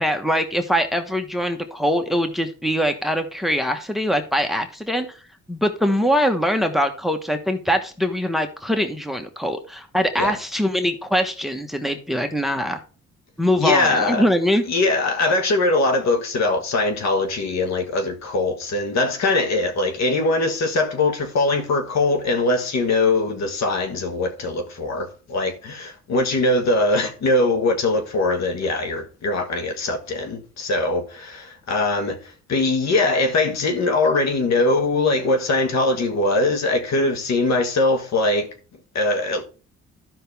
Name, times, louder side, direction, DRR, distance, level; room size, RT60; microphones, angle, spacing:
voice 1, 0.0-5.1 5.5-12.8 13.4-14.6, equal, ahead, 1.1 m, -22 dB
voice 2, 13.6-14.3 14.7-38.5 38.9-39.4, left 2 dB, 60° left, 1.6 m, -21 dB
12.0 x 5.8 x 3.5 m
cardioid pair, 90°, 30 cm